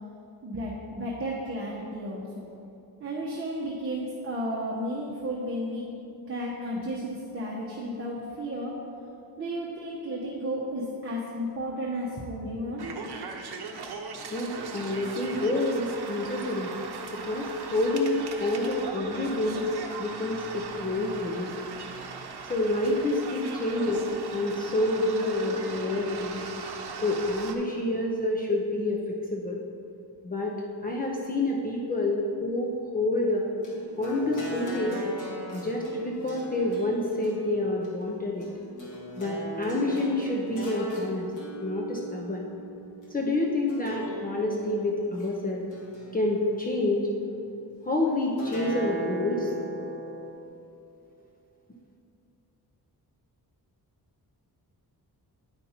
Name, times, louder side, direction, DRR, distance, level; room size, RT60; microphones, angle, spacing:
voice 1, 0.4-2.5 3.0-5.8 6.3-8.7 9.4-12.9, equal, 35° right, -5 dB, 1.0 m, -33 dB
sound 1, 12.8-27.5, right 4 dB, 75° right, 0.8 m, -39 dB
voice 2, 14.3-16.7 17.1-19.6 20.0-21.5 22.5-24.0 24.3-26.5 27.0-29.6 30.2-30.5 30.8-33.5 34.0-35.0 35.5-38.5 39.2-41.3 41.6-42.5 43.1-45.6 46.1-47.1 47.8-49.5, left 2 dB, 20° left, -2 dB, 0.6 m, -28 dB
sound 2, 33.6-43.1 43.7-45.3 45.7-46.8 48.4-50.3, equal, 50° left, 1.9 m, -39 dB
9.7 x 5.2 x 4.3 m, 2.7 s
wide cardioid pair, 150°, 39 cm